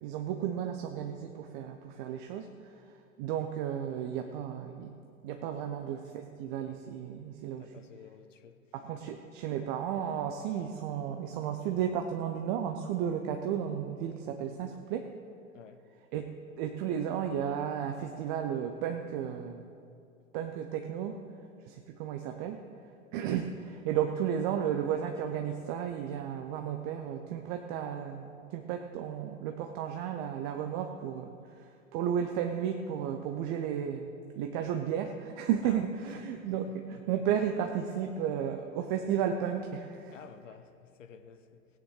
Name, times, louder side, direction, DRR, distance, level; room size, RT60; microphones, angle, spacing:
voice 1, 0.0-4.9 5.2-7.7 8.7-15.1 16.1-16.2 16.6-19.7 20.3-21.2 21.6-22.6 23.1-40.2, right 9 dB, 40° right, 0.8 m, -33 dB
voice 2, 7.6-8.6 9.0-9.1 15.5-15.8 35.6-35.8 36.4-36.6 40.1-41.7, left 7 dB, 70° left, 0.8 m, -52 dB
17.5 x 9.3 x 4.9 m
figure-of-eight pair, 95°, 40 cm